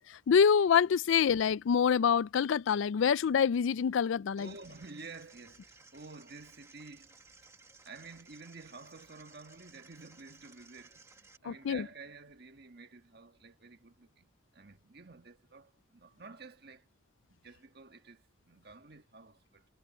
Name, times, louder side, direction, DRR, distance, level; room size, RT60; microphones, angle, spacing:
voice 1, 0.1-4.5 11.4-11.9, left 7 dB, 70° left, 0.4 m, -26 dB
sound 1, 4.4-11.4, right 3 dB, 15° right, 1.7 m, -58 dB
voice 2, 4.4-7.2 7.8-16.8 17.3-19.7, right 4 dB, 50° right, 1.5 m, -51 dB
head